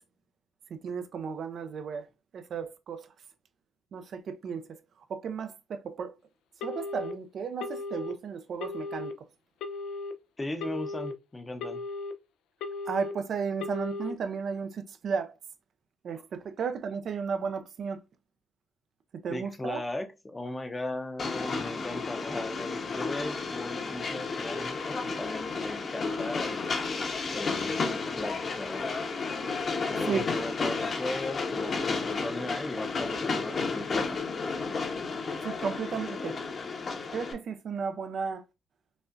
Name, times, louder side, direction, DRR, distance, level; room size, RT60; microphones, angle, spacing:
voice 1, 0.8-2.1 2.3-3.1 3.9-4.8 5.1-6.1 6.6-9.1 12.9-15.3 16.0-18.0 19.2-19.8 30.1-30.2 35.4-36.4 37.1-38.4, right 6 dB, 60° right, 0.5 m, -34 dB
Telephone, 6.6-7.1 7.6-8.1 8.6-9.1 9.6-10.1 10.6-11.1 11.6-12.1 12.6-13.1 13.6-14.1, left 3 dB, 90° left, 0.4 m, -36 dB
voice 2, 10.4-11.8 19.3-26.7 27.3-28.9 29.9-34.2, left 2 dB, 20° left, 0.7 m, -37 dB
Train, 21.2-37.3, left 4 dB, 45° left, 0.9 m, -32 dB
5.2 x 2.4 x 2.5 m
cardioid pair, 100°, 0 cm